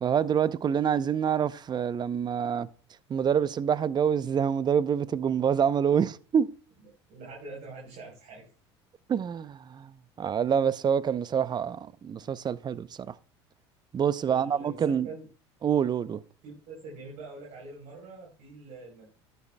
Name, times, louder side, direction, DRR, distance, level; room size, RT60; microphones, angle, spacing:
voice 1, 0.0-2.7 3.1-6.5 9.1-9.9 10.2-13.1 13.9-15.1 15.6-16.2, right 8 dB, 30° right, 0.6 m, -26 dB
voice 2, 6.8-8.5 14.2-15.3 16.4-19.1, right 3 dB, 60° right, 3.8 m, -44 dB
12.5 x 10.5 x 2.2 m
hypercardioid pair, 80°, 14 cm